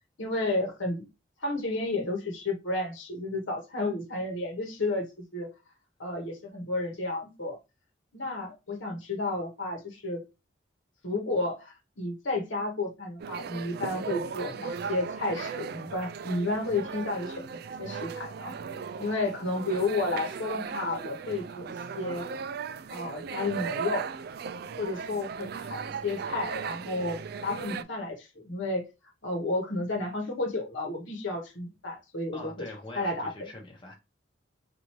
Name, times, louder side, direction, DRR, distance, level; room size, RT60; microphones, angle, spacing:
voice 1, 0.2-1.0 1.4-5.0 5.3-5.5 6.0-7.6 8.1-10.2 11.0-18.6 19.0-22.3 22.9-24.1 24.8-28.8 29.2-32.6 32.9-33.5, left 2 dB, 75° left, 1.1 m, -32 dB
sound 1, 13.2-27.8, right 6 dB, 55° right, 0.3 m, -37 dB
voice 2, 32.3-33.9, left 2 dB, 25° left, 0.9 m, -43 dB
4.3 x 2.6 x 3.0 m
head